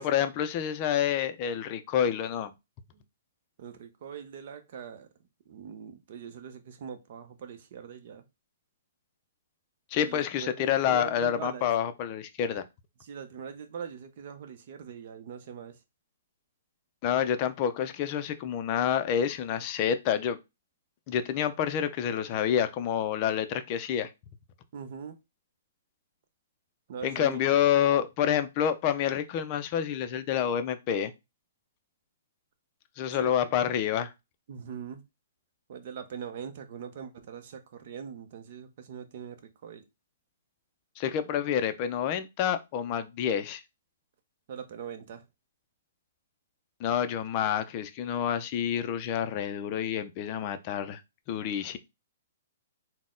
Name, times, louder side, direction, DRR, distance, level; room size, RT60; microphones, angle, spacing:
voice 1, 0.0-2.5 9.9-12.6 17.0-20.4 21.1-24.1 27.0-31.1 33.0-34.1 41.0-43.6 46.8-51.0 51.3-51.8, left 9 dB, 30° left, 0.4 m, -28 dB
voice 2, 3.6-5.1 5.5-8.2 10.0-11.7 13.0-15.8 24.7-25.2 26.9-27.4 33.1-33.3 34.5-35.0 35.7-39.8 44.5-45.2, right 7 dB, 45° right, 0.7 m, -42 dB
4.0 x 2.1 x 3.7 m
hypercardioid pair, 160°, 0 cm